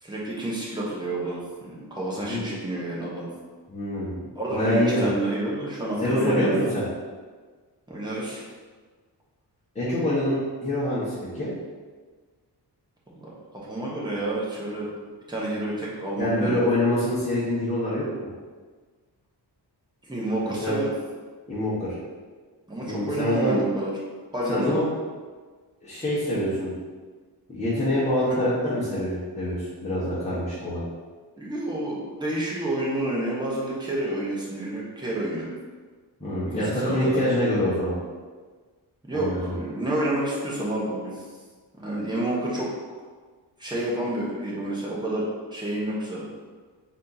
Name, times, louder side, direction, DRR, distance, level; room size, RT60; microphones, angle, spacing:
voice 1, 0.0-3.3 4.3-6.5 7.9-8.4 13.2-14.9 15.3-16.6 20.1-20.9 22.7-23.9 24.3-24.8 28.3-28.4 31.4-35.5 36.6-37.4 39.1-41.2 41.8-42.7 43.6-46.2, right 1 dB, 10° right, -6 dB, 1.1 m, -29 dB
voice 2, 3.7-4.1 4.5-5.1 6.0-6.8 9.7-11.5 16.2-18.0 20.4-20.8 21.5-21.9 22.8-23.6 24.5-24.9 25.8-26.7 27.5-30.8 36.2-37.9 39.1-39.5, left 1 dB, 15° left, -11 dB, 1.2 m, -25 dB
4.1 x 2.9 x 4.0 m, 1.4 s
wide cardioid pair, 120°, 42 cm